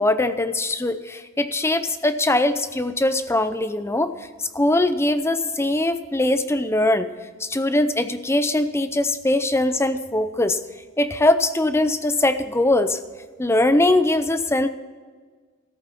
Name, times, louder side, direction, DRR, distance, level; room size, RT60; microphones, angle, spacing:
voice 1, 0.0-4.1 4.5-7.1 7.4-10.6 11.0-13.0 13.4-14.7, left 1 dB, 10° left, 11 dB, 0.6 m, -21 dB
14.0 x 8.7 x 5.9 m, 1.5 s
head